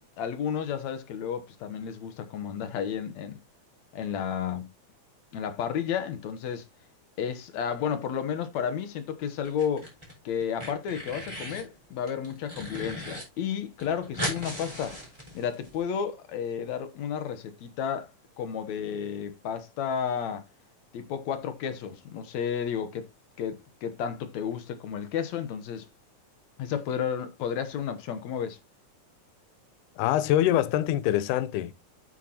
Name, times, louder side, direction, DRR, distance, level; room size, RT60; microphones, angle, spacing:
voice 1, 0.2-3.4 3.9-4.7 5.3-6.7 7.2-9.9 10.3-15.0 15.3-18.1 18.4-20.4 20.9-23.1 23.4-25.9 26.6-28.6, left 8 dB, 70° left, 2.3 m, -32 dB
sound 1, 9.4-10.1 10.4-11.7 12.1-13.2 13.5-13.6 13.8-15.7, equal, 10° right, 5.7 m, -37 dB
voice 2, 30.0-31.7, left 12 dB, 90° left, 2.2 m, -24 dB
9.0 x 8.6 x 3.0 m
omnidirectional pair, 3.5 m